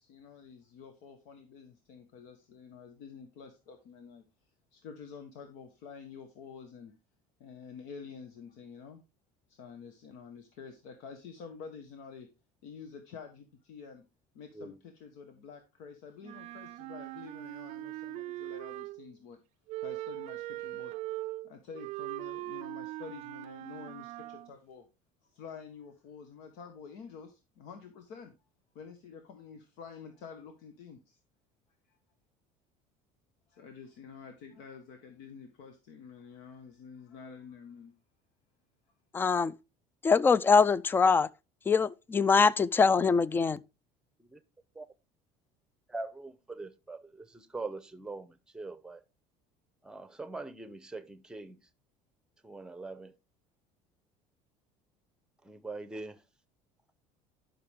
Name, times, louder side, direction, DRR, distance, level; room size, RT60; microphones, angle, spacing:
voice 1, 0.0-4.2 4.7-6.9 7.4-9.0 9.5-12.3 12.6-14.0 14.3-19.4 19.8-20.9 21.4-24.9 25.2-28.3 28.7-31.2 31.9-32.0 33.5-37.9, left 6 dB, 75° left, 1.4 m, -48 dB
Wind instrument woodwind instrument, 16.2-19.1 19.7-24.5, right 17 dB, 55° right, 0.4 m, -40 dB
voice 2, 39.1-39.5 40.0-41.3 41.7-43.6, left 5 dB, 15° left, 0.4 m, -23 dB
voice 3, 45.9-49.0 49.8-51.6 52.4-53.1 55.4-56.2, right 3 dB, 5° right, 0.8 m, -42 dB
11.5 x 6.0 x 3.6 m
cardioid pair, 140°, 14 cm